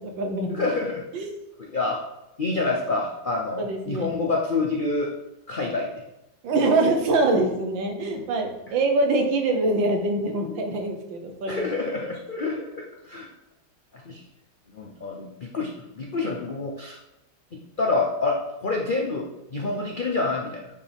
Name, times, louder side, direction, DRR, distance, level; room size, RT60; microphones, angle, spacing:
voice 1, 0.0-0.6 1.1-1.3 3.6-4.2 6.4-11.7, right 2 dB, 90° right, 4 dB, 1.8 m, -24 dB
voice 2, 0.5-1.0 1.6-2.0 2.4-5.1 5.5-5.9 11.5-13.3 13.9-14.2 14.7-17.0 17.5-20.7, left 3 dB, 80° left, 0 dB, 0.4 m, -27 dB
9.1 x 4.9 x 3.5 m, 0.92 s
omnidirectional pair, 2.0 m